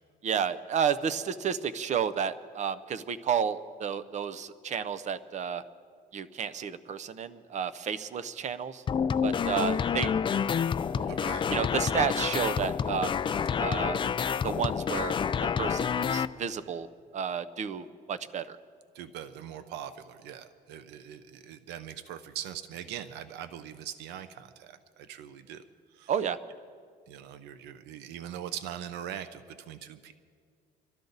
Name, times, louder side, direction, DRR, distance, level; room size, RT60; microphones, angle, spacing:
voice 1, 0.2-5.6 6.1-8.8 9.2-10.1 10.9-11.1 11.5-13.2 13.6-14.0 14.4-15.2 15.6-16.9 17.1-18.6 26.1-26.4, right 7 dB, 45° right, 15 dB, 0.7 m, -31 dB
sound 1, 8.9-16.3, left 7 dB, 30° left, 0.4 m, -28 dB
voice 2, 11.1-11.5 18.9-25.6 25.9-26.1 27.1-30.1, right 10 dB, 90° right, 11 dB, 0.7 m, -41 dB
24.0 x 13.0 x 4.0 m, 2.1 s
cardioid pair, 110°, 17 cm